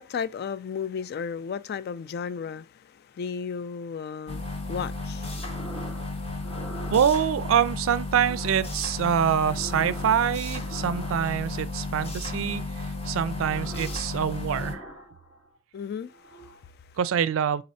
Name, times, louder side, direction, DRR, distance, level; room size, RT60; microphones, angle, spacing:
voice 1, 0.0-6.6 15.7-16.9, left 6 dB, 55° left, 0.3 m, -35 dB
sound 1, 4.3-14.7, left 2 dB, 30° left, 0.7 m, -33 dB
sound 2, 5.3-6.1 6.4-7.5 8.1-8.7 9.1-11.6 12.1-12.7 13.1-14.1 14.4-15.6 16.0-16.7, right 2 dB, 75° left, 2.6 m, -45 dB
voice 2, 6.9-14.9 17.0-17.6, right 8 dB, 85° right, 0.4 m, -25 dB
4.2 x 3.9 x 2.7 m
head